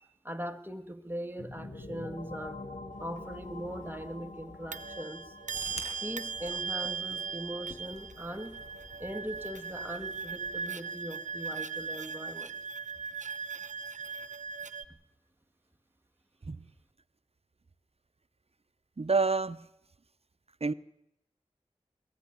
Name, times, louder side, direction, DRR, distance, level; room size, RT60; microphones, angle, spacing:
voice 1, 0.0-2.6 3.0-5.4 6.0-8.6 9.0-12.6, equal, 15° right, 2.0 m, -40 dB
sound 1, 1.4-10.9, left 2 dB, 80° left, 2.9 m, -48 dB
sound 2, 3.2-3.3 4.7-14.8, right 5 dB, 90° right, 0.8 m, -38 dB
sound 3, 5.5-10.6, left 1 dB, 60° left, 5.6 m, -50 dB
voice 2, 19.0-19.7 20.6-20.7, right 4 dB, 55° right, 0.8 m, -27 dB
22.0 x 15.0 x 9.9 m
wide cardioid pair, 45°, 12 cm